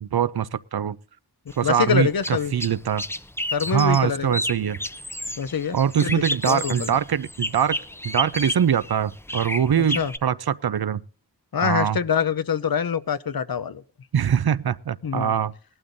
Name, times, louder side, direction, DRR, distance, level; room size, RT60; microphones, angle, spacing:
voice 1, 0.0-1.0 1.6-3.0 3.7-4.8 5.7-7.8 8.0-11.0 11.6-12.0 14.1-15.5, right 8 dB, 70° right, 0.6 m, -23 dB
sound 1, 1.5-10.2, left 1 dB, 5° left, 0.6 m, -32 dB
voice 2, 1.6-2.5 3.5-4.4 5.4-7.0 9.8-10.1 11.5-13.8 15.0-15.3, left 7 dB, 65° left, 0.7 m, -25 dB
19.0 x 12.0 x 2.6 m
wide cardioid pair, 55°, 39 cm